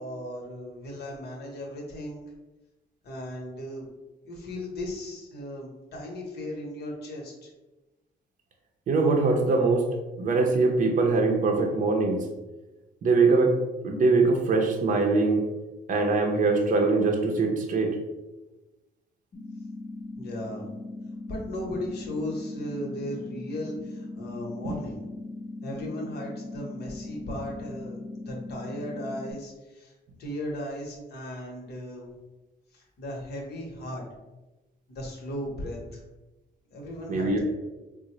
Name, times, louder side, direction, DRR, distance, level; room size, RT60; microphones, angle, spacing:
voice 1, 0.0-2.2 3.0-3.9 4.2-7.5 20.2-20.7 21.3-25.0 25.6-28.0 28.3-29.9 30.2-32.1 32.7-34.0 34.9-36.0 36.7-37.4, left 1 dB, 65° left, -1 dB, 0.9 m, -36 dB
voice 2, 8.9-9.8 10.2-12.2 13.0-13.5 13.8-15.4 15.9-17.9 37.1-37.4, right 3 dB, 45° right, 2 dB, 0.5 m, -22 dB
sound 1, 19.3-29.3, left 2 dB, 40° left, 0.7 m, -39 dB
3.7 x 2.0 x 2.9 m, 1.1 s
cardioid pair, 125°, 18 cm